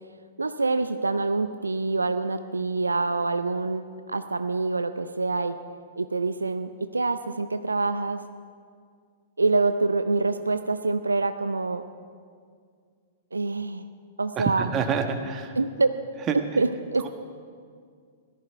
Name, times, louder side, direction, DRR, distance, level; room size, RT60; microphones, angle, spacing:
voice 1, 0.4-5.6 6.0-8.2 9.4-11.9 13.3-13.9 14.2-14.7 15.6-15.9 16.6-17.1, right 3 dB, 85° right, 10 dB, 0.5 m, -26 dB
voice 2, 14.4-15.6 16.3-16.4 17.0-17.1, right 6 dB, 25° right, 6 dB, 1.3 m, -27 dB
17.0 x 13.5 x 4.6 m, 2.1 s
figure-of-eight pair, 105°, 0 cm